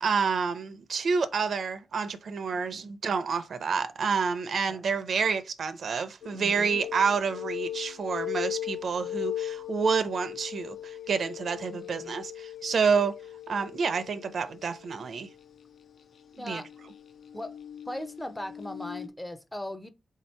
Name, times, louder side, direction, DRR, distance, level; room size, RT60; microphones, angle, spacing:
voice 1, 0.0-13.2 13.5-15.3 16.5-16.6, right 5 dB, 60° right, 0.5 m, -28 dB
sound 1, 6.2-15.7 16.4-19.1, left 11 dB, 70° left, 0.5 m, -39 dB
voice 2, 6.3-6.8 11.7-12.1 16.4-16.7 17.3-17.5 17.9-19.9, left 1 dB, 5° left, 0.4 m, -39 dB
3.7 x 2.8 x 4.3 m
wide cardioid pair, 150°, 0 cm